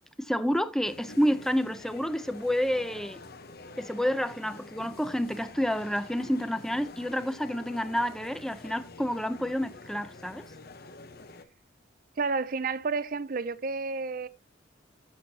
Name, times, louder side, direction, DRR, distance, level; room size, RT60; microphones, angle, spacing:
voice 1, 0.2-3.2 3.8-10.4, equal, 5° left, 0.6 m, -29 dB
sound 1, 0.8-11.5, left 3 dB, 55° left, 1.1 m, -48 dB
voice 2, 12.2-14.3, right 4 dB, 50° right, 0.6 m, -30 dB
14.5 x 6.3 x 2.9 m
head